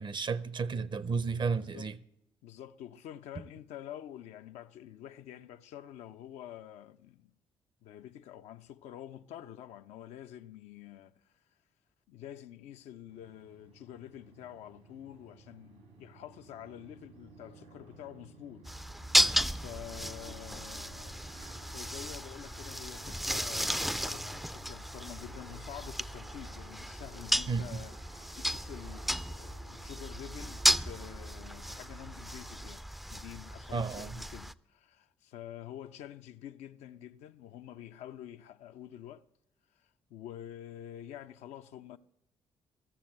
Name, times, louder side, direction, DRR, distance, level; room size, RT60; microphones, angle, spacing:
voice 1, 0.0-2.0 27.5-27.7 33.7-34.2, right 5 dB, 40° right, 0.6 m, -32 dB
voice 2, 2.4-7.4 7.8-11.3 12.1-18.7 19.5-21.2 21.7-32.8 33.1-39.2 39.8-42.0, left 11 dB, 65° left, 0.5 m, -48 dB
sound 1, 13.1-32.7, right 3 dB, 80° right, 2.3 m, -55 dB
sound 2, 18.7-34.5, equal, ahead, 0.4 m, -34 dB
14.5 x 7.0 x 7.7 m
figure-of-eight pair, 40°, 12 cm